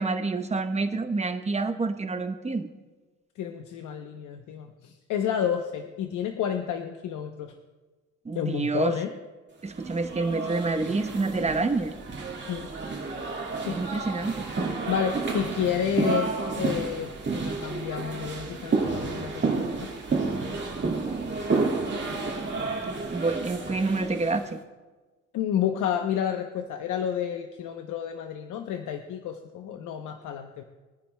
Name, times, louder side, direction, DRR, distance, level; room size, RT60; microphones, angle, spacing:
voice 1, 0.0-2.7 8.2-8.9 9.6-11.9 13.7-14.5 23.1-24.6, right 3 dB, 20° right, 8 dB, 0.9 m, -28 dB
voice 2, 3.4-7.5 8.3-9.1 12.5-12.7 13.6-13.8 14.5-14.6 14.9-19.7 25.3-30.6, left 8 dB, 80° left, 5 dB, 0.8 m, -30 dB
sound 1, 9.7-24.5, right 3 dB, 35° right, 1.8 m, -30 dB
22.5 x 9.9 x 2.2 m, 1.3 s
cardioid pair, 90°, 30 cm